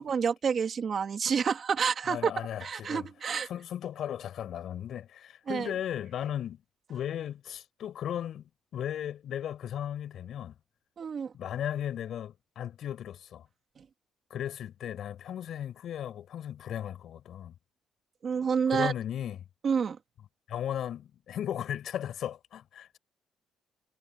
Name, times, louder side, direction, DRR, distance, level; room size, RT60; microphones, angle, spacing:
voice 1, 0.0-2.3 2.6-3.5 5.5-5.7 11.0-11.3 13.8-13.9 18.2-18.9 19.6-20.0, right 6 dB, 40° right, 2.6 m, -28 dB
voice 2, 2.1-3.1 3.4-6.6 6.9-10.6 11.3-13.5 14.3-17.5 18.7-19.5 20.5-23.0, left 10 dB, 60° left, 6.3 m, -36 dB
cardioid pair, 145°, 0 cm